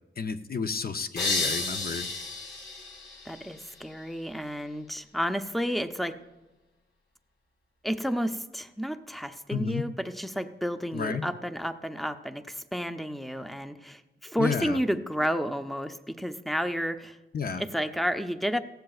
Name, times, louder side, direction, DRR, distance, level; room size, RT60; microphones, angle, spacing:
voice 1, 0.2-2.1 9.5-9.8 10.9-11.3 14.4-14.8 17.3-17.6, left 5 dB, 45° left, 8 dB, 0.6 m, -31 dB
sound 1, 1.2-3.9, left 3 dB, 60° left, 3.8 m, -32 dB
voice 2, 3.3-6.2 7.8-17.2 17.6-18.6, equal, ahead, 8 dB, 0.5 m, -31 dB
18.0 x 15.0 x 2.4 m, 1.1 s
wide cardioid pair, 135°, 21 cm